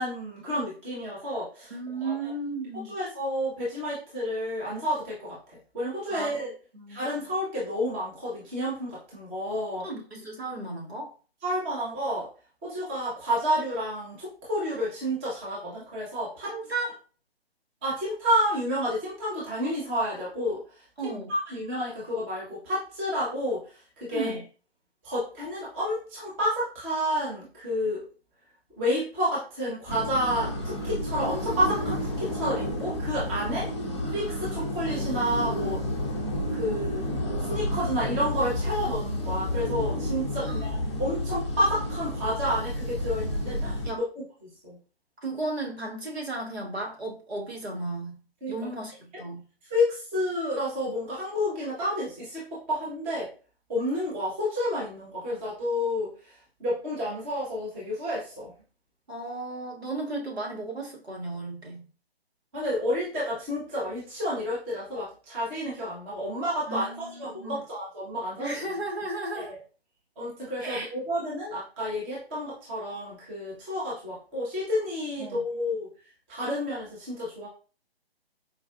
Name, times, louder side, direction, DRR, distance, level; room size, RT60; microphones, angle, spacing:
voice 1, 0.0-1.7 2.0-2.1 2.9-6.5 6.9-9.9 11.4-12.3 12.6-16.6 17.8-20.6 21.0-23.6 24.0-24.4 25.0-28.0 28.8-33.7 34.1-35.8 36.5-37.0 37.4-44.0 44.4-44.8 48.4-48.6 49.7-53.3 53.7-56.1 56.6-58.5 62.5-68.5 69.3-69.6 70.2-75.9 76.3-77.5, equal, 10° right, -7 dB, 0.8 m, -30 dB
voice 2, 1.7-2.9 6.1-6.5 6.7-7.0 9.8-11.1 16.5-16.9 21.0-21.3 24.1-24.4 33.5-33.7 40.4-40.7 43.8-44.0 45.2-48.2 48.5-49.4 59.1-61.8 66.7-67.6 68.4-69.5 70.6-70.9 75.2-75.4, right 2 dB, 80° right, -1 dB, 1.4 m, -34 dB
sound 1, 29.9-43.9, left 1 dB, 25° left, 0.5 m, -31 dB
4.5 x 2.4 x 2.4 m, 0.36 s
figure-of-eight pair, 140°, 31 cm